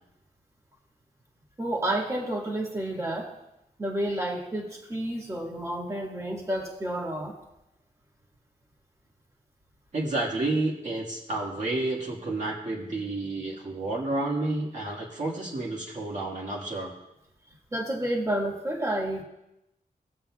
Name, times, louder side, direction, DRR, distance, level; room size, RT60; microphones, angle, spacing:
voice 1, 1.6-3.3 3.8-7.3 17.7-19.2, right 1 dB, 20° right, -1 dB, 1.7 m, -30 dB
voice 2, 9.9-16.9, right 2 dB, 60° right, -3 dB, 1.7 m, -30 dB
21.0 x 7.4 x 2.3 m, 0.89 s
wide cardioid pair, 135°, 15 cm